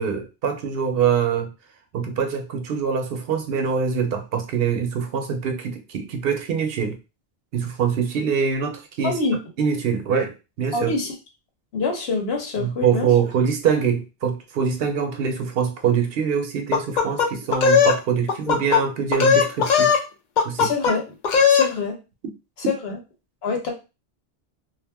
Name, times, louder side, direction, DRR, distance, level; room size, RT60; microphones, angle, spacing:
voice 1, 0.0-1.5 1.9-7.0 7.5-9.2 9.6-10.9 12.6-19.9 20.4-20.7, right 6 dB, 70° right, 0.8 m, -24 dB
voice 2, 9.0-9.3 10.7-11.1 11.7-13.1 20.6-21.0 21.5-21.9 22.6-23.0 23.4-23.7, left 4 dB, 75° left, 1.0 m, -25 dB
sound 1, 16.7-18.0 18.3-18.8 19.1-20.0 20.4-21.0 21.2-21.7, left 6 dB, 55° left, 0.6 m, -18 dB
2.4 x 2.1 x 3.3 m
omnidirectional pair, 1.1 m